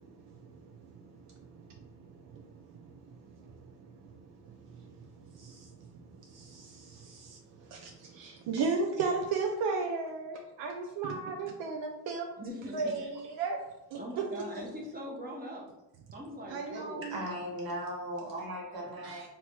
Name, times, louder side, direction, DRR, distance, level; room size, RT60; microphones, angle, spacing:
voice 1, 0.8-2.4 2.7-4.9 5.3-12.3 12.7-13.6 13.9-14.0 14.3-14.4 16.5-17.2 19.0-19.2, right 4 dB, 80° right, 1 dB, 0.5 m, -36 dB
voice 2, 12.4-13.0 14.0-15.7 16.1-17.2, equal, 20° right, -2 dB, 0.8 m, -41 dB
voice 3, 17.1-19.3, right 1 dB, 55° right, -3 dB, 1.0 m, -37 dB
3.0 x 2.9 x 2.2 m, 0.95 s
cardioid pair, 70°, 43 cm